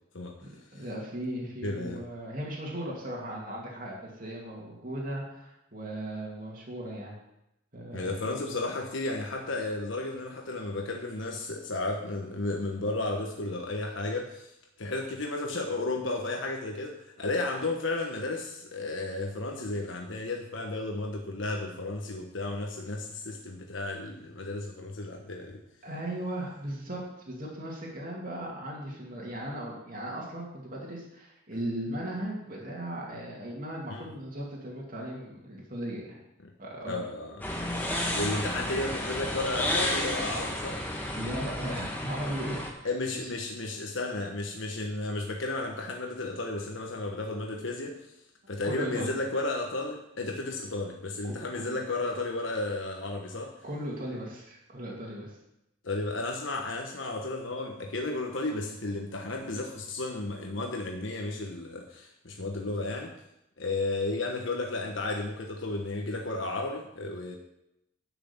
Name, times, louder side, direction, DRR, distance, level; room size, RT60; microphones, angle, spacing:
voice 1, 0.4-7.2 7.7-8.6 25.8-27.0 27.3-36.2 36.6-37.0 41.1-42.9 48.6-49.1 51.2-51.8 53.6-55.4, right 1 dB, 40° right, -3 dB, 2.5 m, -37 dB
voice 2, 1.6-2.0 7.9-14.5 14.8-25.6 33.9-34.1 36.4-36.5 36.9-37.5 38.1-40.8 42.8-47.9 48.5-53.5 55.8-63.1 63.6-67.3, left 2 dB, 70° left, 1 dB, 1.2 m, -33 dB
sound 1, 37.4-42.7, left 1 dB, 10° left, 1.5 m, -32 dB
11.0 x 6.0 x 7.2 m, 0.85 s
head